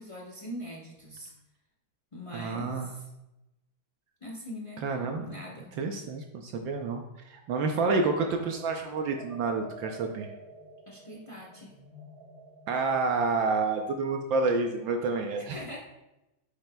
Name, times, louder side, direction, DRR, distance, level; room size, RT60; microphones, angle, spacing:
voice 1, 0.0-1.3 2.1-3.0 4.2-4.9 5.2-5.7 10.9-11.8 15.5-15.8, equal, 50° left, -2 dB, 0.3 m, -42 dB
voice 2, 2.3-2.9 4.8-5.4 5.8-10.3 12.7-15.6, right 3 dB, 70° right, 4 dB, 1.3 m, -29 dB
sound 1, 7.9-13.3, right 2 dB, 30° right, 1.3 m, -49 dB
8.9 x 7.3 x 2.2 m, 0.96 s
omnidirectional pair, 2.3 m